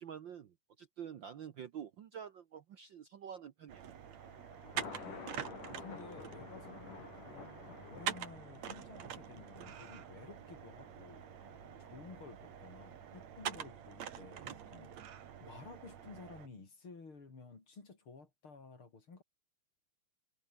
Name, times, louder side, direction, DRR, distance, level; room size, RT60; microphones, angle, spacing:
voice 1, 0.0-3.9, right 8 dB, 90° right, 1.0 m, -48 dB
sound 1, 3.7-16.5, right 9 dB, 60° right, 2.9 m, -46 dB
Thunder, 3.9-15.2, left 5 dB, 75° left, 6.2 m, -53 dB
voice 2, 4.6-5.2 5.8-11.3 11.8-15.0 15.4-19.2, left 4 dB, 40° left, 4.8 m, -53 dB
omnidirectional pair, 3.7 m